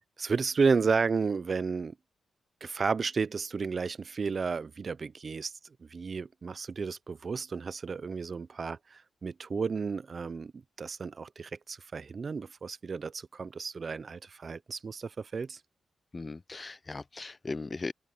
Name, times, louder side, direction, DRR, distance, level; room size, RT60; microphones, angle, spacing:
voice 1, 0.2-1.9 2.6-5.5 5.8-15.6, right 5 dB, 40° right, 0.5 m, -32 dB
voice 2, 16.1-17.9, left 3 dB, 25° left, 0.4 m, -38 dB
wide cardioid pair, 125°, 0 cm